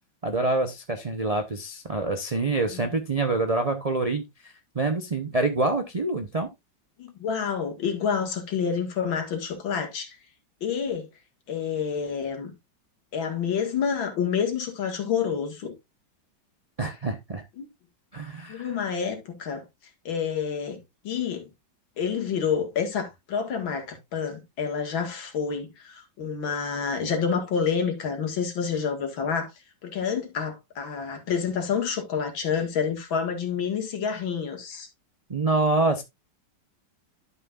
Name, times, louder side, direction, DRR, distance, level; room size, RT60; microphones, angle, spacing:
voice 1, 0.2-6.5 16.8-17.4 18.1-18.8 35.3-36.0, right 2 dB, 45° right, 0.4 m, -26 dB
voice 2, 7.0-10.2 10.6-11.1 11.5-12.5 13.1-15.7 17.6-17.7 18.5-19.6 20.1-20.8 21.0-21.5 22.0-29.5 29.8-34.9, left 6 dB, 85° left, 2.5 m, -28 dB
12.0 x 5.8 x 2.4 m
omnidirectional pair, 2.1 m